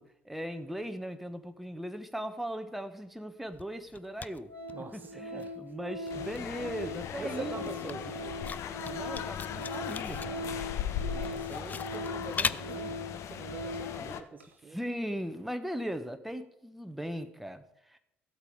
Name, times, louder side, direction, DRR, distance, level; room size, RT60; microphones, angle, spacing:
voice 1, 0.0-4.5 4.9-7.7 8.9-10.5 14.7-18.0, equal, ahead, 7 dB, 1.1 m, -38 dB
Organ, 3.4-3.5 4.0-4.2 4.5-14.1 14.4-14.5, left 1 dB, 85° right, 1.0 m, -41 dB
sound 1, 3.5-5.1 5.4-14.2, left 5 dB, 25° left, 0.4 m, -40 dB
voice 2, 4.7-5.6 7.2-8.3 11.1-14.8, right 4 dB, 30° right, 7 dB, 0.8 m, -44 dB
sound 2, 6.1-14.2, left 9 dB, 50° left, 0.8 m, -38 dB
15.0 x 8.1 x 4.9 m, 0.80 s
figure-of-eight pair, 55°, 6 cm